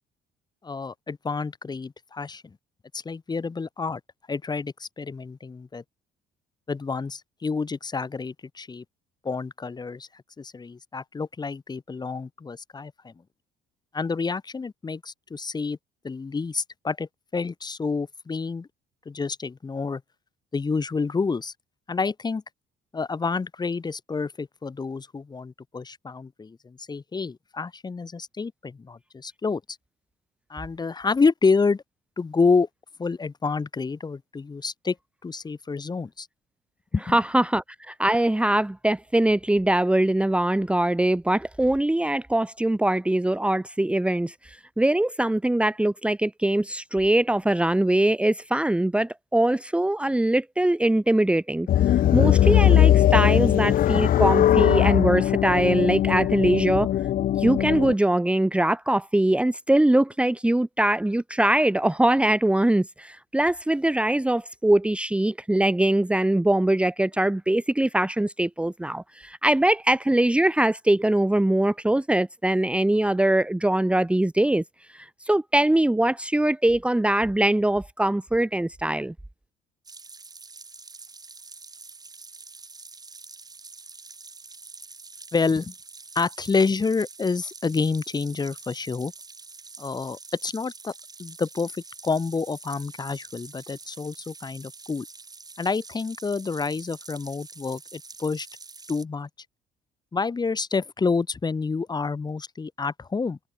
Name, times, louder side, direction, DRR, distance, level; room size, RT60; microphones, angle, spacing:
voice 1, 0.6-2.6 2.9-4.0 4.3-5.8 6.7-8.8 9.2-13.1 13.9-15.8 16.0-18.7 19.0-20.0 20.5-21.5 21.9-22.4 22.9-29.6 30.5-31.8 32.2-32.7 33.0-35.0 35.2-36.3 36.9-37.2 85.3-85.7 86.1-89.1 89.8-90.9 91.2-95.1 95.6-98.5 98.9-99.3 100.1-103.4, left 4 dB, 25° left, 3.3 m, -28 dB
voice 2, 37.1-56.9 57.4-74.6 74.9-79.1, right 1 dB, 5° right, 1.7 m, -22 dB
sound 1, 51.7-57.9, left 11 dB, 55° left, 1.1 m, -20 dB
sound 2, 79.9-99.0, right 4 dB, 20° right, 7.9 m, -45 dB
cardioid pair, 110°, 17 cm